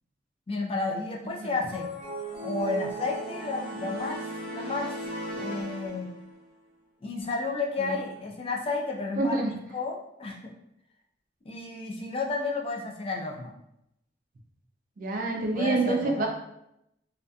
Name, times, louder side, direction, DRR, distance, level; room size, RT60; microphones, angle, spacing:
voice 1, 0.5-1.9 2.4-4.9 5.4-6.1 7.0-9.4 9.7-10.4 11.5-13.5 15.5-16.3, left 3 dB, 30° left, 0 dB, 0.3 m, -32 dB
sound 1, 1.7-6.4, right 1 dB, 5° right, 1.0 m, -36 dB
voice 2, 9.2-9.5 15.0-16.3, right 2 dB, 45° right, 2 dB, 0.4 m, -27 dB
2.6 x 2.4 x 2.2 m, 0.82 s
head